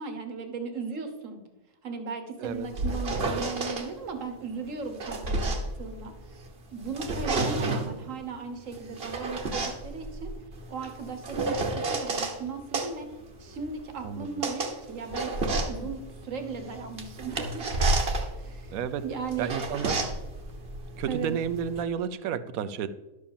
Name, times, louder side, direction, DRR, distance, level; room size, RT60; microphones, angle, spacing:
voice 1, 0.0-1.4 1.8-6.1 6.7-10.3 10.7-13.1 13.4-17.7 18.3-18.8 19.0-19.5 19.9-20.1 21.1-21.4, right 5 dB, 65° right, 6 dB, 1.5 m, -37 dB
sound 1, 2.5-3.9 4.7-6.5 6.8-8.0 8.7-12.4 12.7-21.8, right 2 dB, 45° right, 1.3 m, -31 dB
voice 2, 18.7-19.0 19.4-20.1 21.0-22.9, right 8 dB, 80° right, 13 dB, 1.1 m, -31 dB
11.5 x 4.8 x 7.1 m, 1.1 s
omnidirectional pair, 1.5 m